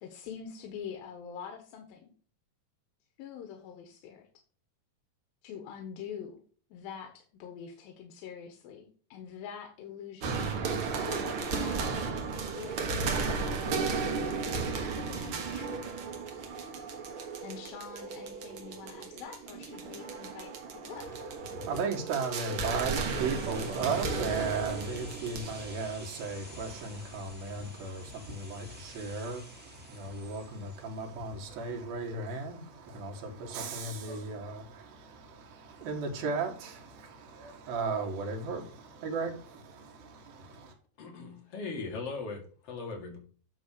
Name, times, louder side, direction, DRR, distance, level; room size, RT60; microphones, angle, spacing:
voice 1, 0.0-2.1 3.2-4.3 5.4-6.4 6.7-13.0 13.3-14.0 14.3-16.0 17.4-21.1, left 7 dB, 80° left, 2.8 m, -45 dB
sound 1, 10.2-25.9, right 4 dB, 55° right, 1.5 m, -34 dB
voice 2, 21.0-40.7, right 4 dB, 80° right, 3.2 m, -36 dB
sound 2, 22.5-32.3 32.6-32.7, equal, 5° right, 0.7 m, -51 dB
voice 3, 41.0-43.2, left 4 dB, 45° left, 2.8 m, -39 dB
9.5 x 3.4 x 6.7 m
omnidirectional pair, 4.2 m